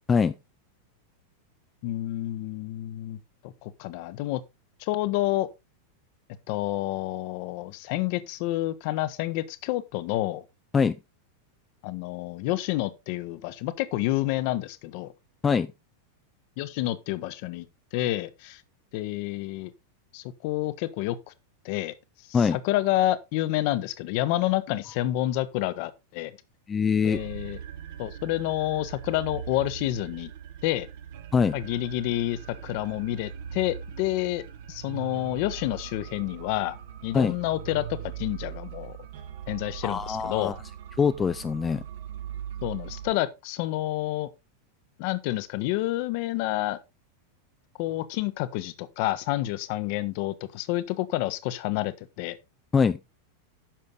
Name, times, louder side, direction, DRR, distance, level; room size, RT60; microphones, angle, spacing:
voice 1, 1.8-4.4 4.8-5.5 6.5-10.4 11.8-15.1 16.6-17.7 17.9-18.6 18.9-19.7 20.1-21.3 21.6-21.9 22.3-26.3 27.0-27.6 28.0-30.3 30.6-30.9 31.5-34.4 34.7-36.8 37.0-39.0 39.5-40.5 42.6-44.3 45.0-46.8 47.8-52.4, left 15 dB, 45° left, 0.9 m, -29 dB
voice 2, 26.7-27.2 31.3-31.6 37.1-37.4 39.8-40.6 41.0-41.8 52.7-53.0, left 6 dB, 20° left, 0.4 m, -23 dB
sound 1, 27.1-43.1, right 9 dB, 55° right, 1.1 m, -40 dB
10.0 x 6.6 x 3.7 m
figure-of-eight pair, 90°, 0 cm